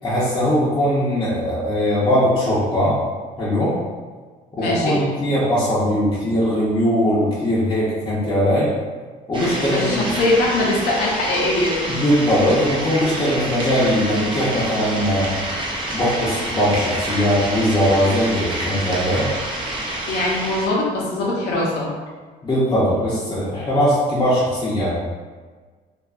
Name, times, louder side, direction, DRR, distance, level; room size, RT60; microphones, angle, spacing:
voice 1, 0.0-3.0 3.4-3.8 4.5-8.7 9.3-10.1 11.9-15.3 15.9-19.3 22.4-24.9, equal, 25° left, -9 dB, 0.6 m, -20 dB
voice 2, 4.6-5.0 9.6-11.9 20.1-21.9, left 2 dB, 80° left, -4 dB, 0.7 m, -22 dB
sound 1, 9.3-20.7, right 1 dB, 30° right, 0.6 m, -28 dB
2.5 x 2.2 x 2.4 m, 1.4 s
cardioid pair, 110°, 17 cm